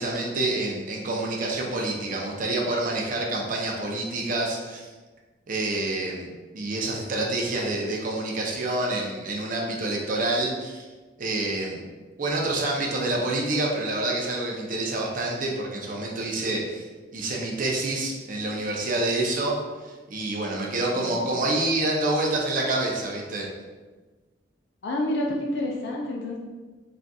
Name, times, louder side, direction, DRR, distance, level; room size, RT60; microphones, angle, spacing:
voice 1, 0.0-4.9 5.5-6.3 6.5-10.9 11.2-11.8 12.2-16.9 17.1-19.6 19.8-23.5, right 2 dB, 50° right, -1 dB, 0.6 m, -27 dB
voice 2, 20.9-21.3 24.8-26.4, left 1 dB, 65° left, 0 dB, 0.4 m, -29 dB
3.8 x 2.5 x 2.3 m, 1.3 s
head